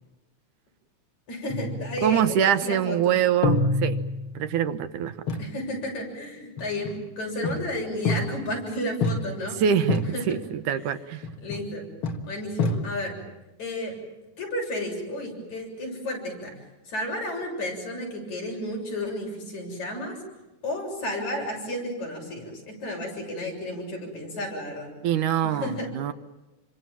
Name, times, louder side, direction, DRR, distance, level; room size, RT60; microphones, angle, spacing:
voice 1, 1.3-3.2 5.4-9.6 10.1-10.2 11.4-11.8 12.3-13.2 13.6-13.9 14.4-16.5 16.9-20.2 20.6-24.9 25.4-25.9, left 1 dB, 65° left, 0 dB, 8.6 m, -32 dB
sound 1, 1.5-2.3 3.4-4.6 5.3-5.6 6.6-7.1 7.4-8.6 9.0-9.6 9.9-10.4 11.2-11.8 12.0-13.2, left 2 dB, 50° left, 2.1 m, -28 dB
voice 2, 2.0-4.0 4.4-5.1 9.6-11.2 25.0-26.1, right 9 dB, 80° right, 10 dB, 2.6 m, -24 dB
28.0 x 25.0 x 7.5 m, 1.1 s
omnidirectional pair, 3.5 m